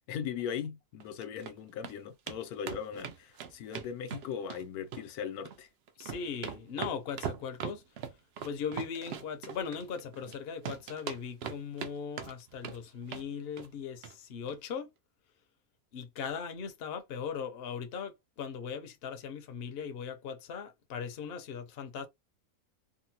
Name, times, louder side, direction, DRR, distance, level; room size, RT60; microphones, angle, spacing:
voice 1, 0.1-5.7, left 8 dB, 80° left, 1.1 m, -39 dB
sound 1, 1.0-1.5 1.8-1.9 2.3-2.4 2.7-4.6 4.9-5.6 5.9-10.4 10.6-11.9 12.2-12.8 13.1-13.3 13.6-13.7 14.0-14.1 14.5-14.6, right 8 dB, 65° right, 0.6 m, -40 dB
voice 2, 6.0-7.8 8.4-14.9 15.9-22.1, left 6 dB, 55° left, 0.8 m, -39 dB
3.8 x 2.1 x 2.7 m
omnidirectional pair, 1.6 m